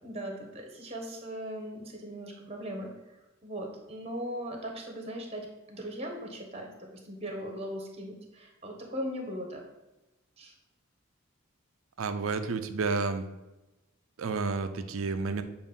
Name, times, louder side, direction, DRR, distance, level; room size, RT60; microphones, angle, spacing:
voice 1, 0.0-2.9 3.4-9.6 10.4-10.5, equal, 30° right, 1 dB, 1.1 m, -39 dB
voice 2, 12.0-13.3 14.2-15.4, right 4 dB, 75° right, 9 dB, 0.5 m, -30 dB
7.2 x 2.6 x 5.2 m, 1.0 s
head